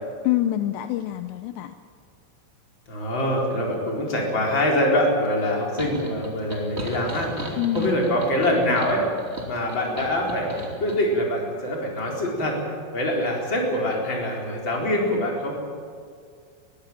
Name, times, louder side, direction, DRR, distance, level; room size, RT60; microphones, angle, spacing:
voice 1, 0.2-1.7 7.6-7.9, left 14 dB, 85° left, 9 dB, 2.5 m, -25 dB
voice 2, 2.9-9.0 9.5-12.6 12.9-15.6, left 1 dB, 25° left, -1 dB, 4.3 m, -24 dB
sound 1, 5.8-11.0, right 1 dB, 20° right, 2.0 m, -36 dB
22.0 x 16.0 x 9.1 m, 2.1 s
omnidirectional pair, 5.9 m